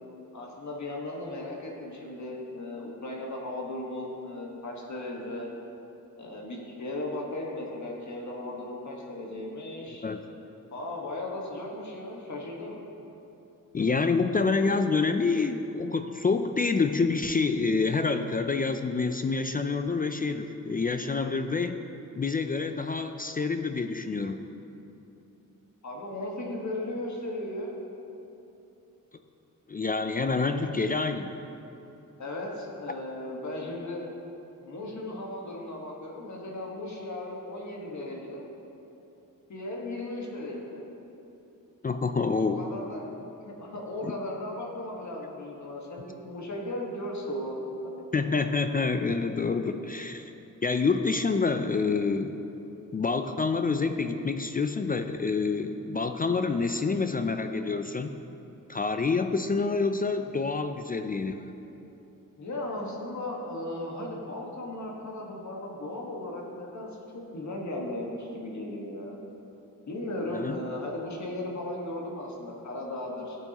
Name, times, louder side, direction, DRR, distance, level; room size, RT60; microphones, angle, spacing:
voice 1, 0.3-5.5 6.2-10.0 10.7-12.8 25.8-27.8 30.4-30.7 32.2-34.0 34.6-38.4 39.5-40.8 42.4-43.0 43.4-47.6 62.4-69.2 69.9-73.4, left 1 dB, 60° left, -2 dB, 1.5 m, -36 dB
voice 2, 13.7-21.8 22.2-24.5 29.7-31.3 41.8-42.7 44.0-44.2 48.1-50.3 50.6-52.4 52.9-58.2 58.7-61.5 70.3-70.6, left 4 dB, 25° left, 8 dB, 0.4 m, -27 dB
12.5 x 8.2 x 2.9 m, 3.0 s
cardioid pair, 80°, 33 cm